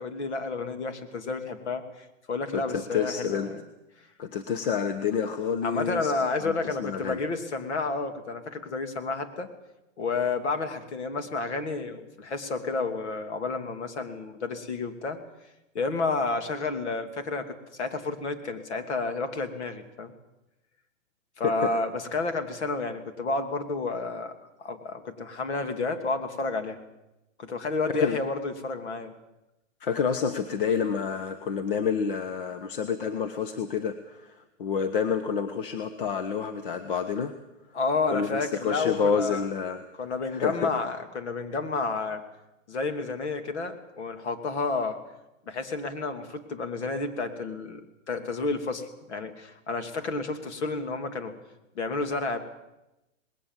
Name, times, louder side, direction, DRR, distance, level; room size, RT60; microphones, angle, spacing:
voice 1, 0.0-3.6 5.6-9.5 10.0-15.2 15.7-20.1 21.4-24.3 24.6-26.8 27.4-29.1 37.7-39.4 40.0-42.2 42.7-45.0 45.5-51.3 51.7-52.4, left 3 dB, 60° left, 7 dB, 2.8 m, -30 dB
voice 2, 2.5-3.5 4.2-6.1 6.4-7.2 21.4-21.7 27.9-28.2 29.8-37.3 38.1-39.9 40.3-40.7, left 6 dB, 40° left, 9 dB, 1.1 m, -28 dB
20.0 x 18.0 x 7.4 m, 0.95 s
hypercardioid pair, 170°, 39 cm